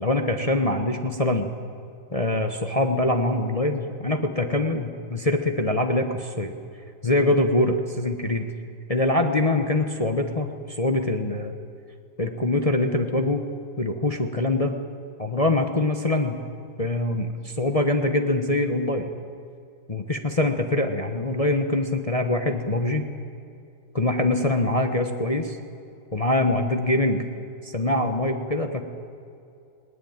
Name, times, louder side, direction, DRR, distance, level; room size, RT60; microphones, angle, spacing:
voice 1, 0.0-1.5 2.1-6.5 7.0-8.5 8.9-11.6 12.2-13.5 13.8-14.8 15.2-16.4 16.8-19.1 19.9-23.0 23.9-25.6 26.1-27.2 27.6-28.8, left 2 dB, 25° left, 5 dB, 0.9 m, -24 dB
20.0 x 18.5 x 8.9 m, 2.6 s
omnidirectional pair, 2.1 m